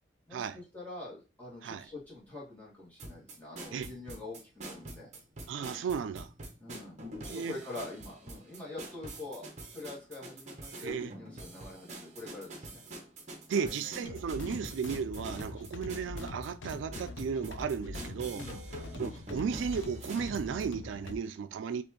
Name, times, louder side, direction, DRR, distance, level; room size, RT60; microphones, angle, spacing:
voice 1, 0.3-5.1 6.6-12.8 13.5-14.2 18.3-18.6, left 2 dB, 10° left, 1.9 m, -45 dB
sound 1, 3.0-20.7, right 1 dB, 40° right, 0.9 m, -46 dB
voice 2, 5.5-6.3 7.3-7.5 10.8-11.1 13.5-18.5 18.9-21.8, right 6 dB, 75° right, 0.3 m, -35 dB
sound 2, 14.0-21.1, left 2 dB, 75° left, 0.5 m, -43 dB
4.2 x 2.9 x 3.0 m
head